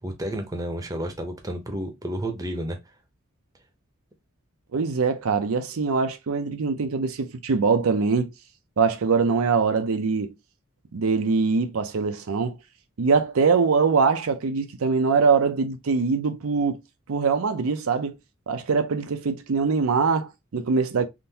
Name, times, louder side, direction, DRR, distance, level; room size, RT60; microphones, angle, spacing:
voice 1, 0.0-2.8, right 1 dB, 15° right, 0.7 m, -31 dB
voice 2, 4.7-8.3 8.8-10.3 10.9-12.6 13.0-16.8 17.1-18.1 18.5-21.1, right 5 dB, 85° right, 0.5 m, -23 dB
3.7 x 2.6 x 2.7 m
head